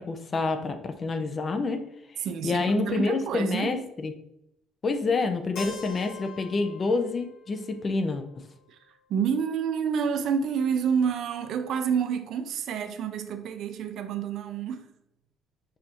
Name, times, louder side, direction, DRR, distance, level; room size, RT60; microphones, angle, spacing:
voice 1, 0.0-1.8 2.4-4.1 4.8-8.2, left 3 dB, 30° left, 0.5 m, -27 dB
voice 2, 2.2-3.7 8.7-8.8 9.1-14.9, right 7 dB, 60° right, 0.5 m, -28 dB
Keyboard (musical), 5.6-9.4, left 5 dB, 60° left, 1.0 m, -45 dB
6.4 x 2.6 x 2.9 m
cardioid pair, 140°, 0 cm